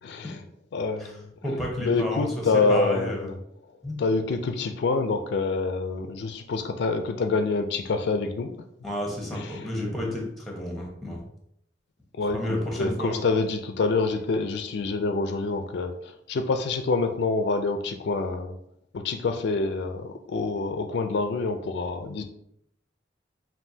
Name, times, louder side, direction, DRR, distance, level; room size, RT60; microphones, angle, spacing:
voice 1, 0.0-0.4 0.7-1.3 1.8-3.4 4.0-8.5 9.3-9.7 12.1-18.5 18.9-22.2, left 3 dB, 65° left, 6 dB, 0.4 m, -27 dB
voice 2, 1.4-3.3 3.8-3.9 8.8-11.2 12.3-13.2, equal, ahead, -1 dB, 1.0 m, -31 dB
5.4 x 2.6 x 2.7 m, 0.74 s
head